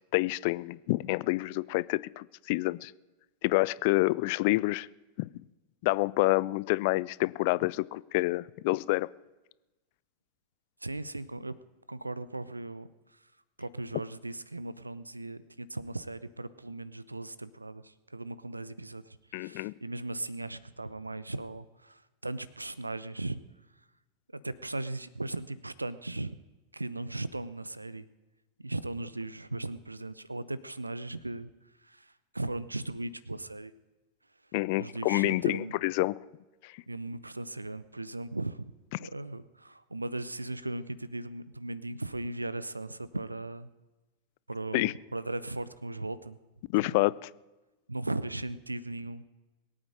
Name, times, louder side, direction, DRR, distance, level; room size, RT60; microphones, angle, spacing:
voice 1, 0.1-2.9 3.4-4.9 5.2-5.3 5.8-9.1 19.3-19.7 34.5-36.2 36.6-36.8 39.0-39.1 44.7-44.9 46.7-47.3, left 22 dB, 50° left, 0.4 m, -28 dB
voice 2, 10.8-11.5 11.9-12.9 13.6-23.4 24.4-26.4 26.7-28.1 28.6-31.5 31.8-33.7 34.8-35.8 36.9-38.7 39.0-43.7 44.5-46.4 46.8-47.1 47.9-49.2, right 2 dB, 85° right, 0.6 m, -37 dB
22.0 x 8.7 x 5.1 m
figure-of-eight pair, 90°, 0 cm